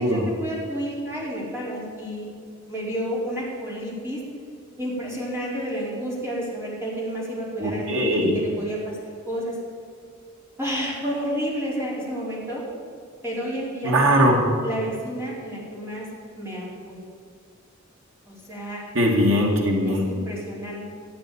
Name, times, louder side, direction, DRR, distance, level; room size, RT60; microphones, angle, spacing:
voice 1, 0.0-2.3 2.7-4.2 4.8-9.0 9.3-9.6 10.6-12.6 13.2-13.9 14.6-16.1 16.4-17.0 18.3-18.9 19.8-20.8, equal, 15° right, -6 dB, 4.7 m, -30 dB
voice 2, 7.6-8.3 13.8-14.4 19.0-20.0, equal, 70° right, 0 dB, 2.1 m, -20 dB
14.0 x 8.5 x 8.7 m, 2.3 s
head